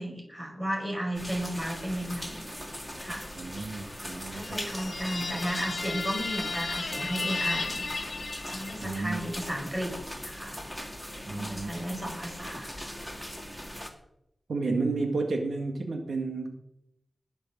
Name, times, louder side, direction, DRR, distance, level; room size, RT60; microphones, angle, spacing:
voice 1, 0.0-2.5 3.0-3.3 4.3-7.9 8.5-10.6 11.3-13.0, equal, 15° right, 0 dB, 5.5 m, -34 dB
sound 1, 1.1-13.9, equal, ahead, 2.3 m, -40 dB
voice 2, 3.3-4.6 8.8-9.2 11.3-12.0 14.5-16.6, right 3 dB, 90° right, 3 dB, 1.9 m, -32 dB
sound 2, 4.4-9.1, left 3 dB, 50° left, 1.2 m, -34 dB
20.0 x 6.8 x 7.4 m, 0.80 s
wide cardioid pair, 115°, 0 cm